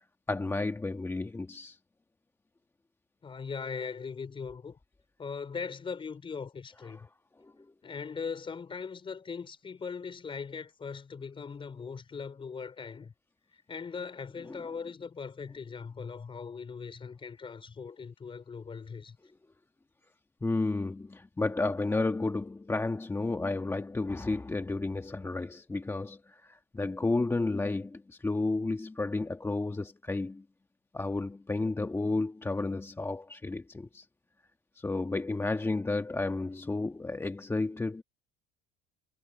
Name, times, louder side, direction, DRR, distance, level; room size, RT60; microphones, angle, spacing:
voice 1, 0.3-1.8 6.9-7.0 7.4-7.5 14.5-14.6 20.4-30.4 30.9-34.1 34.7-38.0, left 2 dB, 15° left, 1.5 m, -32 dB
voice 2, 3.2-4.8 5.2-7.1 7.8-13.1 13.7-19.2, left 5 dB, 30° left, 4.4 m, -40 dB
supercardioid pair, 90°, 18 cm